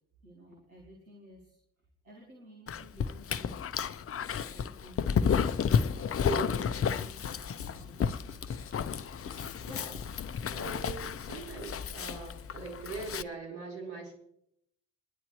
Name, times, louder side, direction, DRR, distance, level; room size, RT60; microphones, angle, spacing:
voice 1, 0.2-1.6 2.0-3.6 4.5-5.3 5.7-8.4, equal, 85° right, -2 dB, 2.0 m, -54 dB
Dog, 2.7-13.2, left 7 dB, 35° left, 0.7 m, -32 dB
Writing, 5.3-10.3, left 6 dB, 85° left, 0.8 m, -47 dB
voice 2, 6.2-6.6 9.6-10.0 10.5-14.1, right 4 dB, 65° right, -1 dB, 4.8 m, -41 dB
22.0 x 11.0 x 3.2 m, 0.72 s
figure-of-eight pair, 40°, 41 cm